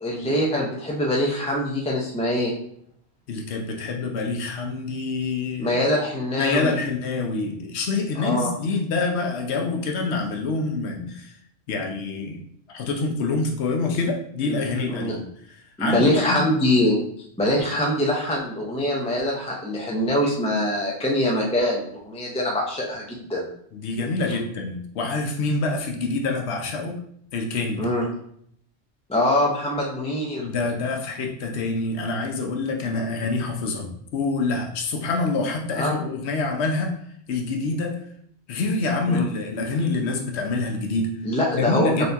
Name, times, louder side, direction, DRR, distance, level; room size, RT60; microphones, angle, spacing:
voice 1, 0.0-2.5 5.6-6.7 8.2-8.5 14.5-14.6 14.9-15.1 15.8-17.0 17.4-23.5 24.3-24.4 27.8-28.0 29.1-30.4 32.8-32.9 35.8-36.0 39.1-39.2 41.2-42.1, left 1 dB, 10° left, -3 dB, 0.5 m, -23 dB
voice 2, 3.3-5.8 6.4-11.3 11.7-15.2 15.8-16.4 23.7-27.0 27.3-27.8 30.4-37.0 37.3-38.0 38.5-41.1 41.5-42.1, left 3 dB, 75° left, 2 dB, 1.0 m, -26 dB
4.0 x 2.7 x 3.3 m, 0.67 s
omnidirectional pair, 1.1 m